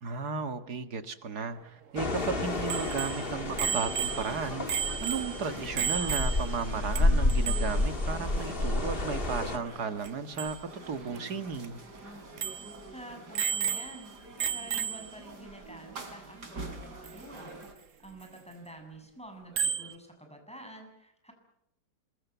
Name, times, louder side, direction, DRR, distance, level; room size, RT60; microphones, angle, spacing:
voice 1, 0.0-4.7 5.0-11.8, right 5 dB, 70° right, 10 dB, 2.2 m, -35 dB
sound 1, 2.0-9.6, left 2 dB, 35° left, 2.4 m, -30 dB
sound 2, 2.1-17.7, right 2 dB, 85° right, 4.0 m, -45 dB
Bicycle bell, 2.7-6.7 7.0-7.1 7.3-7.8 10.0-10.1 10.4-10.6 11.2-11.3 11.6-11.7 12.4-12.7 13.3-14.1 14.4-15.2 17.1-17.2 19.6-19.9, right 7 dB, 50° right, 1.5 m, -32 dB
voice 2, 12.9-14.2 14.5-17.5 18.0-21.3, right 1 dB, 5° left, 4 dB, 7.1 m, -48 dB
27.0 x 22.5 x 8.1 m, 0.75 s
omnidirectional pair, 1.8 m